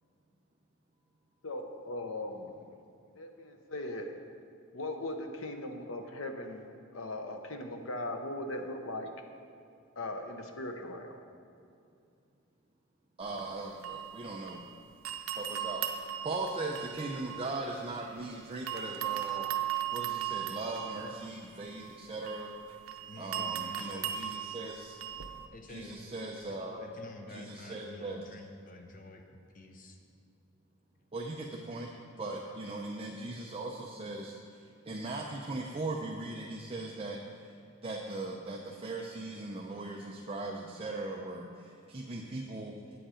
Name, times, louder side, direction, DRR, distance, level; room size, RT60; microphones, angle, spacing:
voice 1, 1.4-2.7 3.1-4.1 4.7-6.7 6.9-9.1 10.0-11.2, left 1 dB, 75° left, 5 dB, 0.9 m, -39 dB
voice 2, 13.2-14.6 15.3-15.8 16.2-19.5 19.9-22.5 23.2-25.0 25.7-26.9 27.3-28.2 31.1-31.9 32.2-34.6 34.9-37.5 37.8-42.7, right 2 dB, 30° right, -1 dB, 0.5 m, -39 dB
sound 1, 13.2-14.7 15.0-18.3 18.7-25.5, right 11 dB, 85° right, 0.7 m, -38 dB
voice 3, 23.1-24.2 25.5-26.0 26.5-30.0, left 2 dB, 40° left, 4 dB, 0.7 m, -49 dB
8.7 x 7.9 x 5.0 m, 2.5 s
head